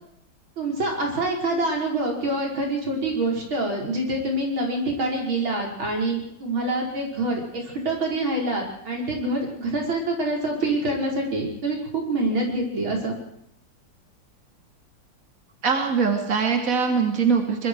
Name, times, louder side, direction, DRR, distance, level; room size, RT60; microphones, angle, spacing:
voice 1, 0.6-13.2, right 2 dB, 90° right, -1 dB, 6.1 m, -26 dB
voice 2, 15.6-17.7, right 5 dB, 45° right, 3 dB, 3.2 m, -22 dB
25.0 x 22.5 x 4.8 m, 0.78 s
omnidirectional pair, 2.1 m